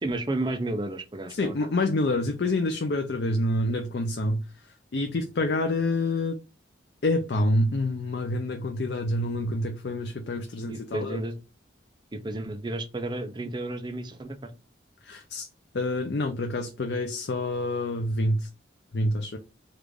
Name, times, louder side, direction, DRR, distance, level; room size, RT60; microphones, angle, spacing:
voice 1, 0.0-1.7 10.7-11.4 12.1-14.5, right 2 dB, 25° right, 0.4 m, -32 dB
voice 2, 1.3-4.4 4.9-6.4 7.0-11.2 15.0-15.5 15.7-18.5 18.9-19.4, left 1 dB, 55° left, 0.4 m, -27 dB
3.2 x 2.4 x 3.5 m
head